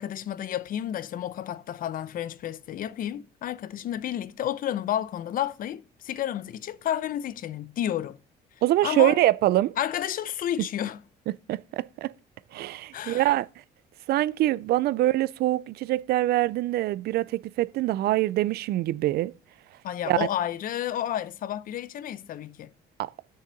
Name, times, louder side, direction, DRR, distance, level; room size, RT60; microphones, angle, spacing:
voice 1, 0.0-8.2 8.8-9.2 9.8-11.0 12.9-13.3 19.8-22.7, left 11 dB, 55° left, 0.7 m, -31 dB
voice 2, 8.6-9.8 11.5-12.1 12.5-13.5 14.1-19.3 20.1-20.3 23.0-23.1, right 15 dB, 70° right, 0.5 m, -24 dB
6.6 x 6.6 x 7.3 m
cardioid pair, 110°, 17 cm